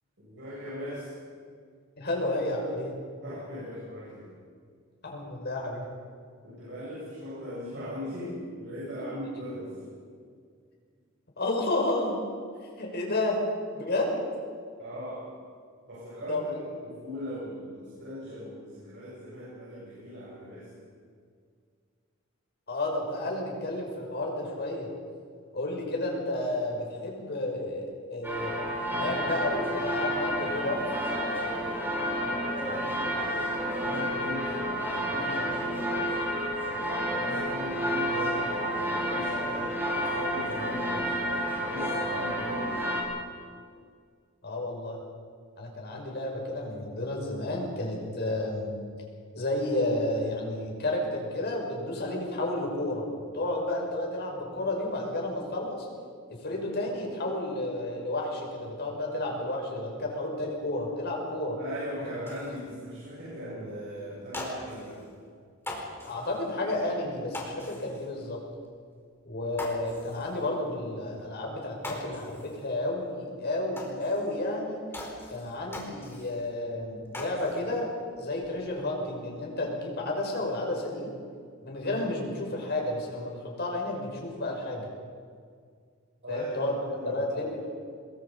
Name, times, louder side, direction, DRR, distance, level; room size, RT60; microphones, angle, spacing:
voice 1, 0.2-1.1 3.2-4.3 6.4-10.0 14.8-15.3 15.9-16.5 16.8-20.7 31.9-36.2 37.1-41.3 41.6-42.8 61.6-65.0 86.2-87.2, equal, 60° right, -7 dB, 7.5 m, -39 dB
voice 2, 2.0-2.9 5.0-5.8 9.0-9.1 11.4-12.1 12.8-13.4 13.7-14.2 16.3-16.6 22.7-24.9 25.5-28.6 28.9-30.8 44.4-45.0 45.6-48.7 49.3-53.0 53.3-55.8 56.4-61.6 62.5-62.6 66.0-68.4 69.2-74.8 75.3-77.9 78.2-81.1 81.6-84.9 86.3-86.8 87.0-87.6, left 2 dB, 50° left, 0 dB, 5.9 m, -31 dB
sound 1, 28.2-43.0, equal, 10° right, 5.9 m, -30 dB
Ketchup bottle open and close and squeeze, 62.3-62.6 63.3-63.4 63.7-63.8 64.1-65.1 65.6-66.5 67.3-68.1 68.5-68.7 69.0-69.1 69.5-70.5 71.2-71.3 71.6-72.7 73.0-73.1 73.7-74.5 74.9-76.5 76.8-77.7 78.0-78.6, left 1 dB, 10° left, 4.6 m, -42 dB
27.0 x 21.0 x 5.4 m, 2.1 s
head